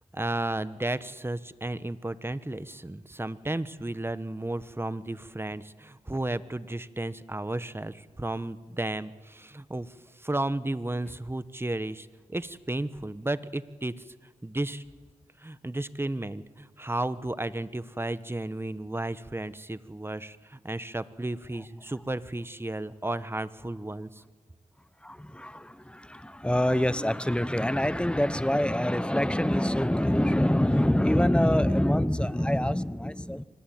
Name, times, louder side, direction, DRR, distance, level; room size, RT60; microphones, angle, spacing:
voice 1, 0.1-13.9 14.4-14.8 15.4-24.2, right 1 dB, 15° right, 14 dB, 1.2 m, -33 dB
voice 2, 25.0-33.4, left 1 dB, 5° left, 16 dB, 1.0 m, -25 dB
25.0 x 19.0 x 9.4 m, 1.3 s
cardioid pair, 55°, 14 cm